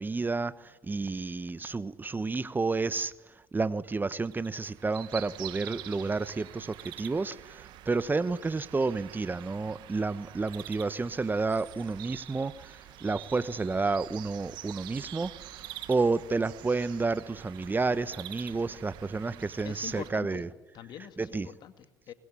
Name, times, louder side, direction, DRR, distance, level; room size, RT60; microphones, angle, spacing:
voice 1, 0.0-3.1 3.5-20.5 21.2-21.5, right 3 dB, 25° right, 1.2 m, -30 dB
sound 1, 4.2-20.1, right 14 dB, 70° right, 1.6 m, -46 dB
voice 2, 19.6-20.5 20.7-22.1, left 10 dB, 60° left, 2.2 m, -44 dB
25.0 x 21.5 x 10.0 m
hypercardioid pair, 60°, 8 cm